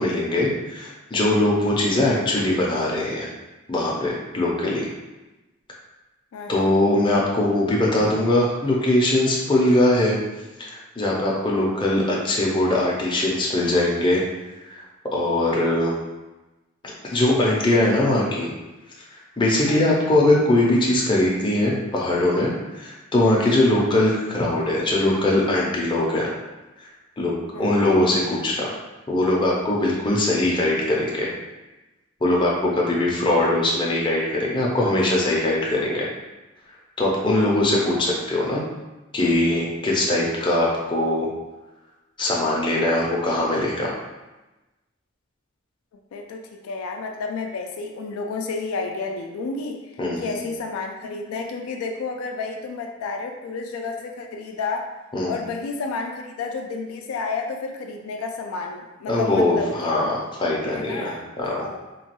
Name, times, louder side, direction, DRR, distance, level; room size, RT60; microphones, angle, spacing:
voice 1, 0.0-3.3 3.7-4.9 6.5-10.2 10.6-14.2 14.6-14.8 15.1-15.9 17.1-18.5 19.1-26.3 26.8-26.9 27.2-27.3 27.6-28.7 29.1-31.3 32.2-36.1 37.0-38.6 39.1-41.3 42.2-43.9 50.0-50.4 55.1-55.4 59.1-61.7, left 1 dB, 25° left, -3 dB, 0.5 m, -21 dB
voice 2, 6.3-6.8 19.7-20.0 23.6-23.9 27.5-27.8 46.1-49.8 50.2-54.9 55.3-60.1 60.7-61.8, left 4 dB, 80° left, 3 dB, 0.3 m, -31 dB
3.0 x 2.2 x 2.9 m, 1.1 s
head